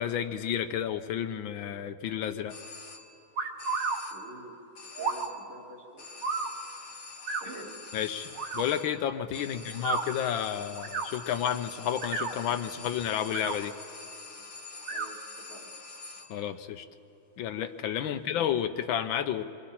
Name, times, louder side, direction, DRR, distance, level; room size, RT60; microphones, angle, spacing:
voice 1, 0.0-2.6 7.9-13.8 16.3-16.9 17.4-19.4, left 9 dB, 75° left, 9 dB, 1.4 m, -31 dB
sound 1, 2.5-3.3 3.6-4.4 4.7-5.6 6.0-16.5, left 3 dB, 45° left, 1.4 m, -46 dB
sound 2, 3.4-4.0 5.0-5.3 6.2-6.5 7.2-7.5 8.3-8.6 9.7-10.0 10.8-11.1 11.9-12.3 13.2-13.6 14.8-15.1, right 4 dB, 60° right, 1.8 m, -31 dB
voice 2, 4.1-4.6 5.0-6.1 6.4-6.6 7.4-7.7 9.5-9.7 14.8-15.7 18.0-18.4, right 1 dB, 85° right, -4 dB, 3.6 m, -48 dB
26.5 x 23.0 x 4.3 m, 2.8 s
omnidirectional pair, 2.3 m